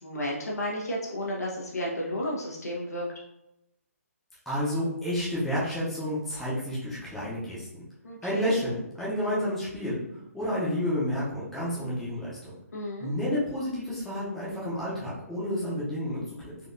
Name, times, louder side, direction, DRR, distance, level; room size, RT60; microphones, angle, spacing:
voice 1, 0.0-3.1 8.0-8.5 12.7-13.1, left 1 dB, 85° left, -3 dB, 1.2 m, -32 dB
voice 2, 4.5-7.8 8.2-10.0 10.3-12.5 13.0-16.4, equal, 5° left, -9 dB, 0.8 m, -30 dB
4.0 x 2.6 x 2.6 m, 0.86 s
hypercardioid pair, 155°, 8 cm